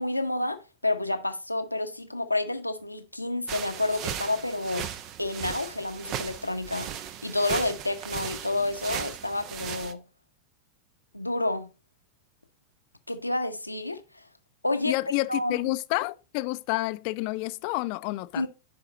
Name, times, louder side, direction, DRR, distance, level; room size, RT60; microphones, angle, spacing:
voice 1, 0.0-4.9 5.2-6.9 7.2-10.0 11.1-11.7 13.1-14.2 14.6-15.0 15.3-15.6 18.4-18.5, left 2 dB, 85° left, 0.9 m, -29 dB
sound 1, 3.5-9.9, right 9 dB, 40° right, 0.7 m, -37 dB
voice 2, 14.8-18.5, left 21 dB, 45° left, 0.5 m, -29 dB
10.5 x 4.7 x 4.0 m
figure-of-eight pair, 90°, 0 cm